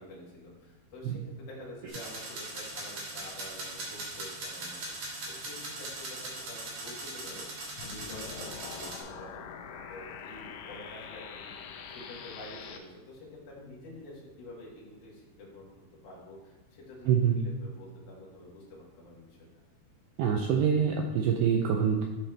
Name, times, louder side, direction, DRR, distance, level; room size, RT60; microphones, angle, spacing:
voice 1, 0.0-4.9 5.3-15.7 16.0-19.5, left 1 dB, 65° left, -4 dB, 3.1 m, -48 dB
sound 1, 1.9-9.0, right 2 dB, 55° right, 2.9 m, -40 dB
sound 2, 7.8-12.8, left 7 dB, 85° left, 2.8 m, -44 dB
voice 2, 17.1-17.4 20.2-22.1, right 7 dB, 85° right, 2 dB, 2.3 m, -25 dB
12.0 x 4.2 x 3.3 m, 1.1 s
omnidirectional pair, 5.2 m